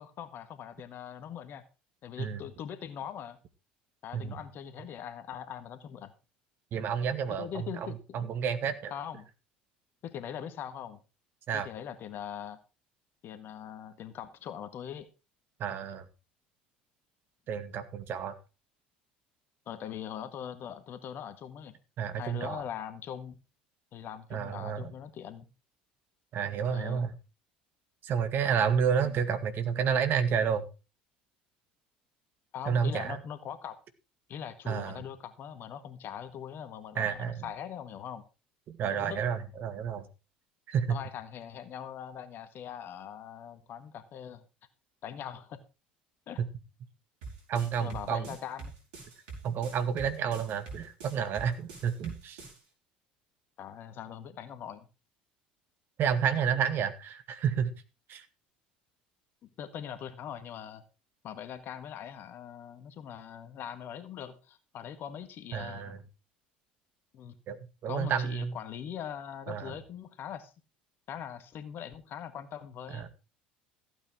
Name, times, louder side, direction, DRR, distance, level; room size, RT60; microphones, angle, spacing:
voice 1, 0.0-1.6 2.0-3.4 4.0-6.1 7.4-8.0 8.9-9.3 10.0-11.0 11.5-12.6 13.2-15.1 19.7-21.7 22.2-23.4 23.9-25.5 26.7-27.1 29.0-29.1 32.5-33.8 34.3-38.2 38.8-39.2 40.9-44.4 45.0-45.6 46.3-46.4 47.8-48.7 53.6-54.9 59.4-60.8 61.2-66.0 67.1-67.4 67.9-70.5 71.1-73.1, left 9 dB, 50° left, 11 dB, 1.7 m, -41 dB
voice 2, 6.7-8.9 11.5-11.7 15.6-16.0 17.5-18.3 22.0-22.6 24.3-24.9 26.3-27.1 28.0-30.6 32.7-33.2 34.7-35.0 37.0-37.4 38.7-40.1 40.7-41.0 47.5-48.2 49.4-52.4 56.0-57.7 58.1-58.2 65.5-66.0 67.5-67.6 67.8-68.5 69.5-69.7 72.9-73.1, right 7 dB, 50° right, 10 dB, 2.0 m, -30 dB
sound 1, 47.2-52.6, right 4 dB, 70° right, 6.1 m, -44 dB
15.0 x 9.0 x 4.6 m, 0.30 s
figure-of-eight pair, 65°, 5 cm